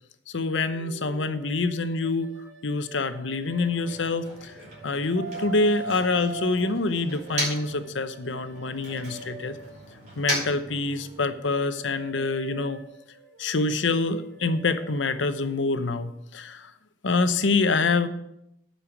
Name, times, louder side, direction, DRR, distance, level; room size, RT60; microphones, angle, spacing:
voice 1, 0.3-2.3 2.6-4.5 4.8-9.6 10.2-12.8 13.4-16.7 17.0-18.1, left 3 dB, 80° left, 10 dB, 0.8 m, -26 dB
sound 1, 0.7-4.3 4.7-9.9 10.4-15.9, right 5 dB, 75° right, 1.6 m, -43 dB
Motor vehicle (road), 3.4-7.8 8.2-11.4, right 1 dB, 40° right, 4.8 m, -37 dB
8.9 x 5.6 x 8.1 m, 0.80 s
head